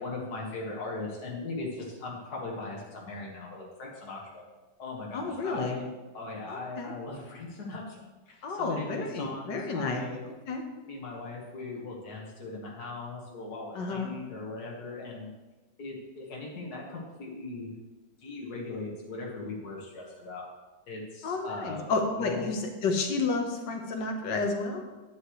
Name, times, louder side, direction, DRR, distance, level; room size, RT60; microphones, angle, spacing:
voice 1, 0.0-4.4 4.8-5.9 6.1-8.0 8.3-10.2 10.8-15.3 15.8-17.7 18.2-20.5 20.9-21.9 22.2-22.5, left 3 dB, 65° left, -3 dB, 2.2 m, -39 dB
voice 2, 5.1-5.8 6.5-6.9 8.4-10.6 13.8-14.1 21.2-24.8, left 3 dB, 80° left, 3 dB, 1.8 m, -31 dB
9.7 x 9.7 x 3.2 m, 1.2 s
omnidirectional pair, 1.8 m